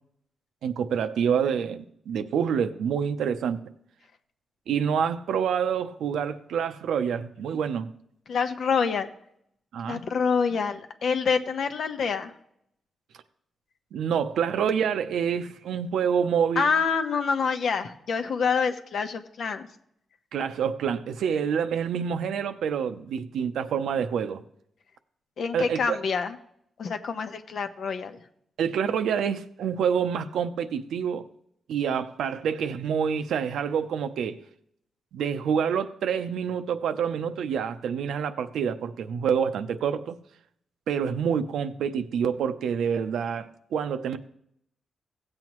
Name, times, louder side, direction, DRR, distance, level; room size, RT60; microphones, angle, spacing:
voice 1, 0.6-3.6 4.7-7.9 9.7-10.0 13.9-16.7 20.3-24.4 25.5-26.0 28.6-31.2 31.7-34.4 35.1-40.2 40.9-44.2, right 7 dB, 85° right, 0.7 m, -27 dB
voice 2, 8.3-9.1 9.9-12.3 16.6-19.7 25.4-26.4 26.8-28.2, left 5 dB, 70° left, 1.0 m, -26 dB
16.5 x 7.6 x 3.1 m
cardioid pair, 70°, 0 cm